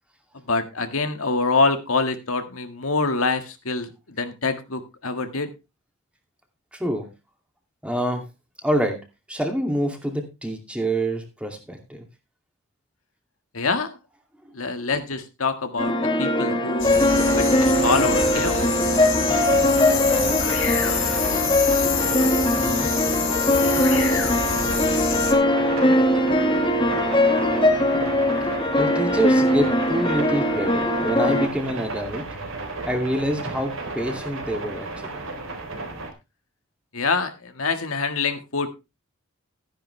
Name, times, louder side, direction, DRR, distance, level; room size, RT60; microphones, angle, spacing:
voice 1, 0.5-5.5 13.5-14.0 14.5-18.7 36.9-38.7, left 3 dB, 85° left, 7 dB, 1.8 m, -25 dB
voice 2, 6.7-7.1 7.8-8.3 8.6-12.0 22.6-22.9 28.4-28.5 28.8-32.2 32.9-35.2, right 1 dB, 5° right, 3 dB, 2.4 m, -26 dB
sound 1, 15.8-31.5, left 1 dB, 25° left, 1.4 m, -21 dB
sound 2, 16.8-25.3, left 7 dB, 70° left, 3.9 m, -27 dB
sound 3, 16.9-36.1, right 2 dB, 75° right, 3.6 m, -33 dB
14.0 x 10.0 x 3.3 m, 0.26 s
head